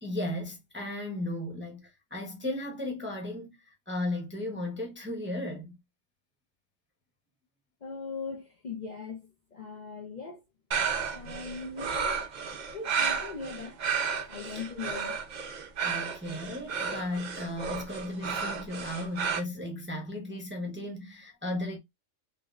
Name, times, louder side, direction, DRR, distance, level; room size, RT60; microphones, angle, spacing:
voice 1, 0.0-5.8 15.8-21.8, left 1 dB, 10° right, 0.7 m, -35 dB
voice 2, 7.8-10.4 11.1-12.2 12.7-13.8 14.3-15.2, left 4 dB, 45° left, 0.7 m, -40 dB
sound 1, 10.7-19.4, right 6 dB, 50° right, 0.6 m, -32 dB
3.6 x 2.7 x 2.4 m
omnidirectional pair, 1.3 m